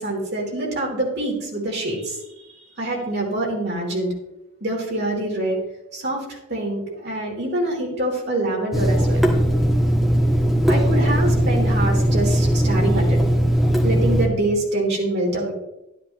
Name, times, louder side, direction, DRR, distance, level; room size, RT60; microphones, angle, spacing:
voice 1, 0.0-2.2 2.6-4.1 4.6-5.6 5.9-9.3 10.7-13.2 13.8-15.5, right 1 dB, 55° right, -2 dB, 3.3 m, -25 dB
Water tap faucet / Sink (filling or washing), 8.7-14.3, equal, ahead, 1.5 m, -19 dB
11.5 x 10.5 x 3.1 m, 0.92 s
head